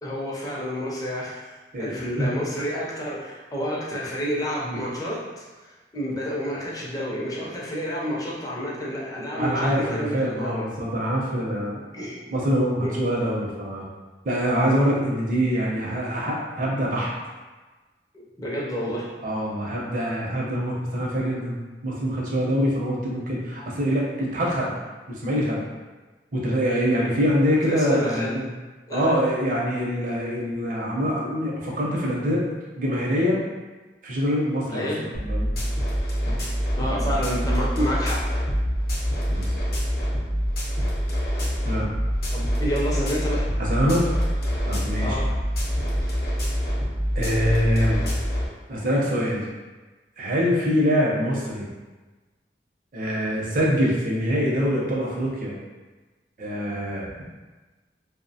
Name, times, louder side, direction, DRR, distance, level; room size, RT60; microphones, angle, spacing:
voice 1, 0.0-10.6 11.9-12.3 12.8-12.9 18.4-19.1 27.6-28.4 28.9-29.2 34.7-35.0 36.8-38.2 42.3-43.5 45.0-45.4, equal, 20° left, -5 dB, 0.5 m, -29 dB
voice 2, 9.4-11.8 12.3-13.8 14.2-17.1 19.2-21.6 21.8-24.7 25.1-25.6 26.3-28.5 28.9-32.4 32.8-33.4 34.0-34.9 35.2-35.5 36.3-36.4 36.9-37.0 39.3-39.5 41.6-41.9 43.6-44.1 44.7-45.2 47.2-48.0 48.7-49.5 50.2-51.7 52.9-55.5 56.4-57.1, equal, 50° right, -4 dB, 0.6 m, -24 dB
sound 1, 35.1-48.5, equal, 60° left, 0.7 m, -25 dB
2.7 x 2.1 x 2.7 m, 1.3 s
head